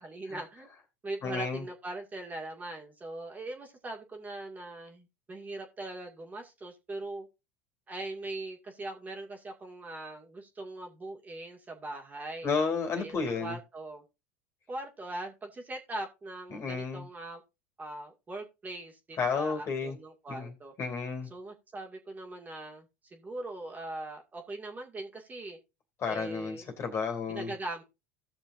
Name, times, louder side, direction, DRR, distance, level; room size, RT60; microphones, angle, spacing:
voice 1, 0.0-0.7 1.0-7.3 7.9-12.5 12.9-14.0 14.7-17.4 17.8-20.7 21.3-25.6 26.0-26.7 27.3-27.8, right 2 dB, 25° right, 2.1 m, -41 dB
voice 2, 1.2-1.6 12.4-13.6 16.5-17.1 19.2-20.0 20.3-20.5 20.8-21.3 26.0-27.5, left 5 dB, 40° left, 2.6 m, -32 dB
17.0 x 6.1 x 2.6 m
hypercardioid pair, 85°, 7 cm